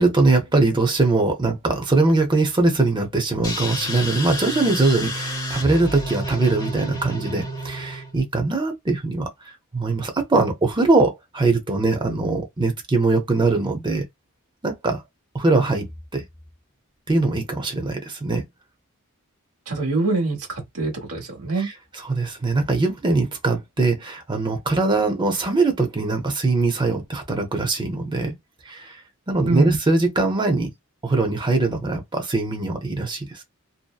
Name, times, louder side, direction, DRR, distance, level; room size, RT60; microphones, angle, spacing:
voice 1, 0.0-14.0 14.6-15.0 15.3-16.2 17.1-18.4 21.6-21.7 22.0-28.3 28.7-29.0 29.3-30.7 31.0-33.5, right 3 dB, 20° right, 0.7 m, -22 dB
sound 1, 3.4-8.2, equal, 20° left, 0.8 m, -30 dB
voice 2, 19.7-21.7 29.4-29.8, right 3 dB, 75° right, 1.2 m, -24 dB
2.7 x 2.1 x 2.3 m
head